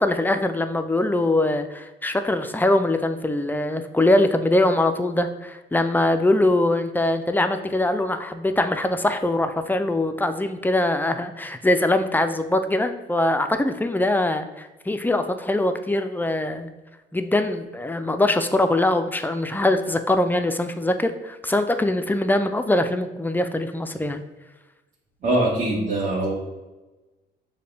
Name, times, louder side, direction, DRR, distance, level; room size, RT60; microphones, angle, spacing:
voice 1, 0.0-16.7 17.1-24.2, left 1 dB, 10° left, 8 dB, 0.4 m, -22 dB
voice 2, 25.2-26.3, right 1 dB, 40° right, -5 dB, 1.2 m, -22 dB
6.6 x 2.2 x 3.3 m, 1.1 s
cardioid pair, 90°, 20 cm